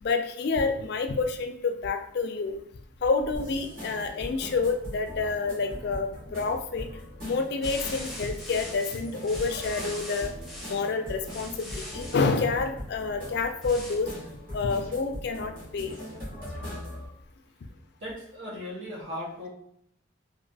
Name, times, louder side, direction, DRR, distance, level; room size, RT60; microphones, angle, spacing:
voice 1, 0.0-2.6 3.0-6.9 7.2-10.3 10.7-14.1 14.5-15.9, left 4 dB, 55° left, 6 dB, 0.3 m, -28 dB
sound 1, 3.3-17.1, equal, 45° right, 1.4 m, -40 dB
sound 2, 7.6-10.8 11.2-12.2 13.6-14.0, left 1 dB, ahead, 0.6 m, -41 dB
voice 2, 18.0-19.5, left 1 dB, 70° right, -4 dB, 1.2 m, -37 dB
3.0 x 2.5 x 2.7 m, 0.71 s
head